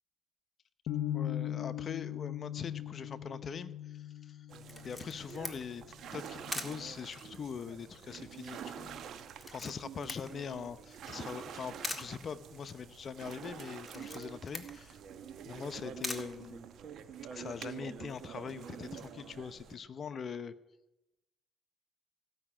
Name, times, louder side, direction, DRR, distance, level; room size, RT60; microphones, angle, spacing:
sound 1, 0.9-6.9, left 11 dB, 80° left, 0.7 m, -40 dB
voice 1, 1.1-4.5 4.8-5.8 6.1-9.0 9.5-15.0 15.4-16.7 17.3-20.5, left 6 dB, 50° left, 12 dB, 0.9 m, -42 dB
sound 2, 4.5-19.8, right 8 dB, 70° right, 1.0 m, -47 dB
Camera, 4.7-17.2, left 2 dB, 15° left, 1.9 m, -46 dB
16.5 x 6.0 x 8.8 m, 0.93 s
cardioid pair, 80°, 0 cm